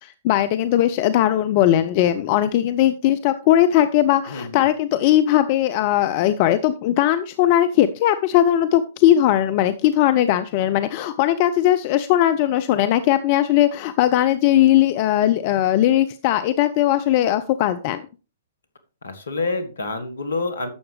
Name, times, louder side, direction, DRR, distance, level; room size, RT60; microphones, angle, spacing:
voice 1, 0.0-18.0, left 12 dB, 40° left, 11 dB, 0.5 m, -19 dB
voice 2, 4.3-4.6 19.0-20.7, left 3 dB, 70° left, 9 dB, 1.4 m, -27 dB
11.5 x 7.1 x 3.3 m, 0.33 s
figure-of-eight pair, 115°, 0 cm